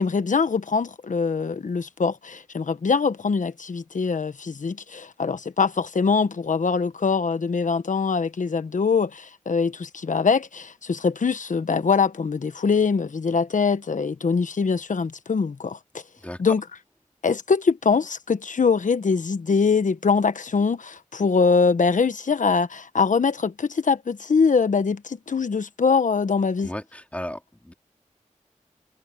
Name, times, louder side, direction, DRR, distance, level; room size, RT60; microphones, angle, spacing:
voice 1, 0.0-16.0 16.4-16.6 17.2-26.7, left 5 dB, 70° left, 1.2 m, -23 dB
voice 2, 26.6-27.7, left 1 dB, 10° left, 3.3 m, -35 dB
wide cardioid pair, 70°, 14 cm